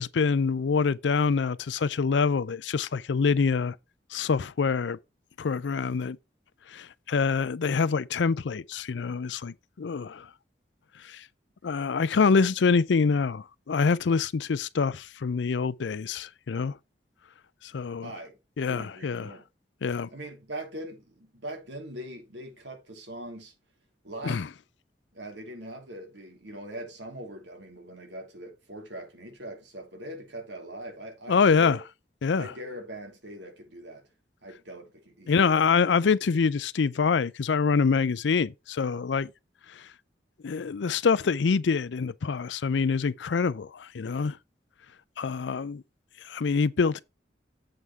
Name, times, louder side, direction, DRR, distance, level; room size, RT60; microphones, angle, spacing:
voice 1, 0.0-3.7 4.1-5.0 5.4-6.2 6.7-10.3 11.1-11.2 11.6-16.7 17.7-18.1 18.6-19.3 19.8-20.1 24.2-24.5 31.3-31.8 32.2-32.5 35.3-39.3 40.4-44.4 45.2-45.8 46.3-47.0, left 5 dB, 85° left, 0.5 m, -25 dB
voice 2, 18.0-18.3 18.7-19.5 20.1-23.5 24.0-24.4 25.1-31.8 32.4-34.1 34.4-35.7, right 1 dB, 85° right, 2.9 m, -41 dB
7.8 x 5.7 x 4.5 m
head